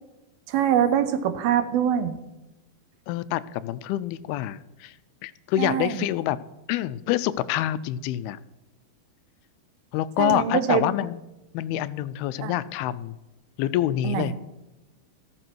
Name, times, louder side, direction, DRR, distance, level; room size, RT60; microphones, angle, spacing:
voice 1, 0.5-2.2 5.6-6.1 10.2-10.8 12.4-12.6 14.0-14.4, right 9 dB, 75° right, 10 dB, 2.7 m, -24 dB
voice 2, 3.1-4.9 5.2-6.4 6.7-8.4 9.9-11.2 11.5-13.2 13.6-14.3, left 13 dB, 85° left, 16 dB, 2.5 m, -27 dB
13.5 x 13.0 x 4.6 m, 1.0 s
omnidirectional pair, 4.4 m